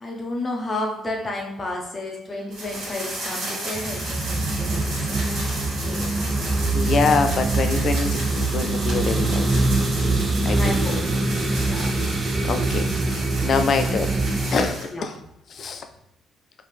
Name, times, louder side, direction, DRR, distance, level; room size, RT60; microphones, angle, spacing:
voice 1, 0.0-5.2 5.8-6.2 10.6-11.0 11.6-11.9 14.9-15.1, left 2 dB, 20° left, 0 dB, 0.8 m, -31 dB
sound 1, 2.5-14.9, right 1 dB, 60° right, 1.5 m, -33 dB
sound 2, 3.7-14.7, right 2 dB, 25° right, 0.4 m, -24 dB
voice 2, 6.7-9.8 10.4-10.9 11.7-11.9 12.5-14.2 14.5-15.2 15.5-15.9, left 4 dB, 45° left, 7 dB, 0.4 m, -25 dB
4.3 x 2.8 x 3.5 m, 0.79 s
cardioid pair, 140°, 0 cm